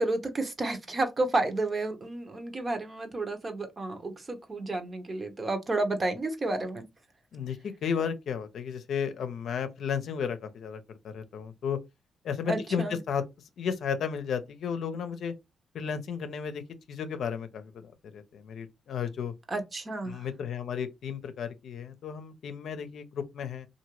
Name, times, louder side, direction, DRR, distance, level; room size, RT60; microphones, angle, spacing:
voice 1, 0.0-6.8 12.5-13.0 19.5-20.2, right 2 dB, 40° right, 0.9 m, -31 dB
voice 2, 7.3-11.8 12.2-13.2 13.6-15.3 15.7-16.6 16.9-19.3 20.0-23.7, left 7 dB, 75° left, 0.5 m, -33 dB
2.8 x 2.5 x 3.0 m
cardioid pair, 65°, 0 cm